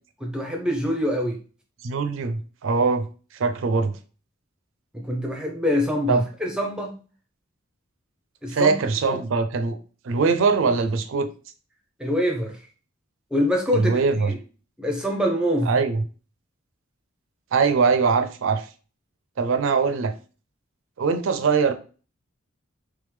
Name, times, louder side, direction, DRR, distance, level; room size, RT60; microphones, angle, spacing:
voice 1, 0.2-1.4 4.9-7.0 8.4-8.7 9.1-9.2 12.0-12.6 13.3-14.4 14.8-15.8, equal, 5° right, 1 dB, 0.5 m, -25 dB
voice 2, 1.8-3.0 3.3-3.9 6.1-6.2 8.5-9.8 10.0-11.3 13.7-14.3 15.6-16.0 17.5-18.7 19.4-20.1 21.0-21.7, right 4 dB, 70° right, 8 dB, 0.4 m, -22 dB
3.5 x 3.3 x 3.2 m, 0.37 s
head